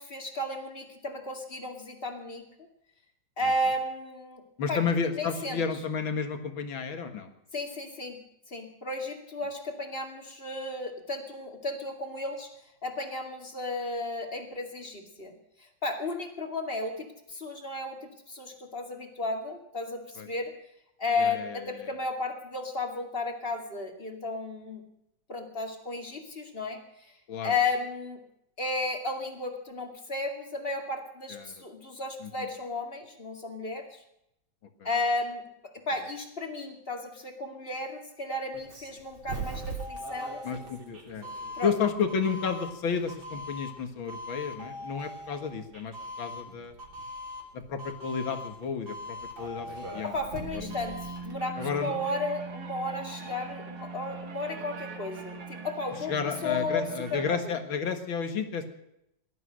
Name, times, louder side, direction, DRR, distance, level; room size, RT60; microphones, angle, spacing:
voice 1, 0.0-2.4 3.4-4.4 4.7-4.8 5.2-5.6 7.5-8.2 8.5-12.5 12.8-15.3 15.8-20.5 21.0-24.8 25.3-26.8 27.4-28.2 28.6-34.0 34.8-35.4 35.7-40.4 41.6-41.7 50.0-56.1 56.4-57.4, left 2 dB, 30° left, 3 dB, 2.4 m, -33 dB
voice 2, 4.6-7.3 20.2-20.3 21.2-21.9 27.3-27.5 31.3-31.5 32.2-32.5 40.4-41.3 41.6-46.7 47.7-50.1 50.5-50.7 51.6-52.0 56.1-58.6, left 6 dB, 70° left, 7 dB, 2.4 m, -32 dB
Doorbell, 38.5-51.3, right 1 dB, 65° right, 4.2 m, -41 dB
sound 1, 50.3-57.4, right 4 dB, 85° right, 2.8 m, -41 dB
18.0 x 12.5 x 6.3 m, 0.81 s
omnidirectional pair, 2.2 m